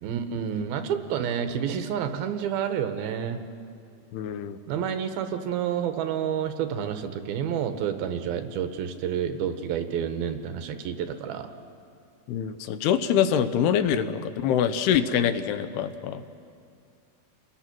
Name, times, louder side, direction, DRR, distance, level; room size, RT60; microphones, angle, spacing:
voice 1, 0.0-3.4 4.7-11.5, right 8 dB, 75° right, 8 dB, 2.8 m, -29 dB
voice 2, 4.1-4.6 12.3-16.2, left 8 dB, 85° left, 10 dB, 2.9 m, -25 dB
29.5 x 20.5 x 6.1 m, 2.4 s
omnidirectional pair, 4.5 m